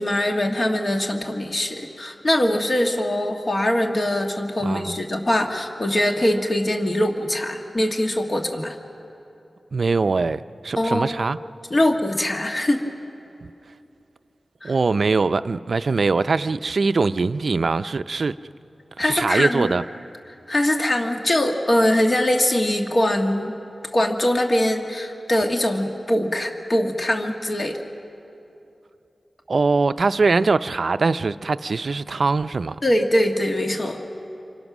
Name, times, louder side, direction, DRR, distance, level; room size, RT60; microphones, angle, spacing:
voice 1, 0.0-8.8 10.7-11.1 11.7-12.8 14.6-14.7 19.0-19.7 20.5-23.5 23.9-27.8 32.8-34.0, left 1 dB, 40° left, 1.7 m, -22 dB
voice 2, 4.6-4.9 9.7-11.4 14.6-18.3 19.0-19.8 29.5-32.8, right 4 dB, 65° right, 0.5 m, -22 dB
28.0 x 24.5 x 6.1 m
wide cardioid pair, 100°, 0 cm